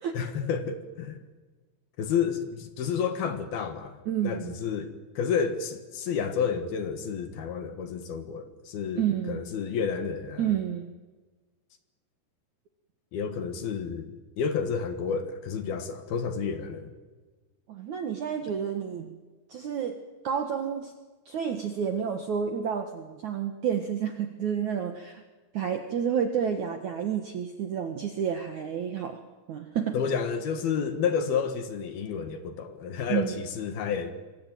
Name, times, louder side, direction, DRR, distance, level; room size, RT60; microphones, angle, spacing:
voice 1, 0.1-1.2 2.0-4.0 4.2-10.5 13.1-16.9 29.9-34.1, left 6 dB, 60° left, 9 dB, 3.2 m, -30 dB
voice 2, 4.1-4.5 9.0-9.5 10.4-10.9 17.7-19.1 19.5-20.0 20.2-20.9 21.3-25.2 25.5-29.2 29.5-30.0 33.1-33.4, right 8 dB, 60° right, 6 dB, 2.0 m, -30 dB
27.0 x 24.0 x 9.2 m, 1.3 s
omnidirectional pair, 5.4 m